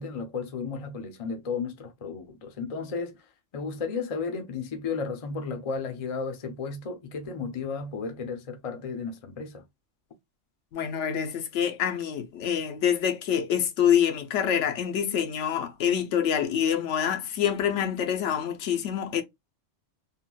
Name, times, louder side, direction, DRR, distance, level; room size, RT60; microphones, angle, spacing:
voice 1, 0.0-3.2 3.5-9.6, left 5 dB, 40° left, 0.5 m, -33 dB
voice 2, 10.7-19.2, left 9 dB, 75° left, 0.9 m, -26 dB
3.5 x 2.3 x 2.2 m
omnidirectional pair, 1.3 m